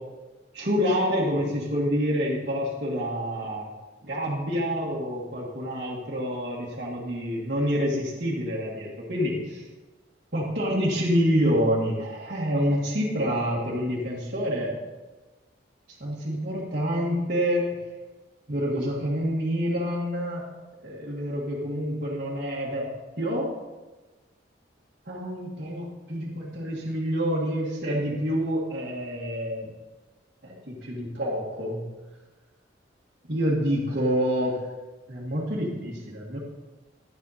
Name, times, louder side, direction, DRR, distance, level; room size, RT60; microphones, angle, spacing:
voice 1, 0.5-3.7 4.0-9.6 10.3-14.8 16.0-17.6 18.5-20.4 20.8-22.9 23.2-23.5 25.1-29.7 30.4-31.8 33.3-34.5 35.1-36.4, equal, 55° right, -9 dB, 1.9 m, -27 dB
11.0 x 7.5 x 4.3 m, 1.2 s
head